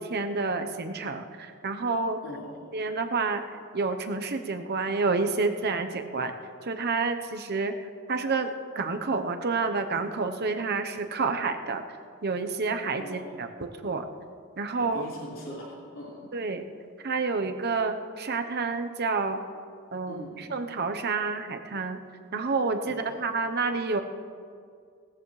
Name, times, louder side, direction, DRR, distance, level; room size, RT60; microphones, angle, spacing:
voice 1, 0.0-2.2 2.7-3.4 3.7-6.3 6.6-7.7 8.1-11.8 12.2-14.1 14.6-15.0 16.3-16.6 17.0-19.4 19.9-22.0 22.3-24.0, right 4 dB, 50° right, 7 dB, 0.9 m, -29 dB
voice 2, 2.2-2.6 13.0-13.4 14.7-16.3 20.1-20.5 22.8-23.3, equal, 65° left, -7 dB, 4.4 m, -41 dB
18.5 x 14.0 x 3.2 m, 2.2 s
head